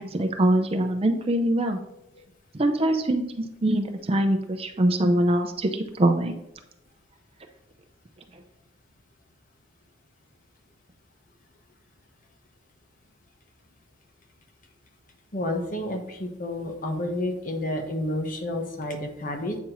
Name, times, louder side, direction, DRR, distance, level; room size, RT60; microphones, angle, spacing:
voice 1, 0.0-1.8 2.5-6.3 8.3-8.4, right 1 dB, 30° right, 5 dB, 0.6 m, -23 dB
voice 2, 15.3-19.6, left 1 dB, 45° left, 3 dB, 1.1 m, -30 dB
8.3 x 5.2 x 3.0 m, 0.84 s
head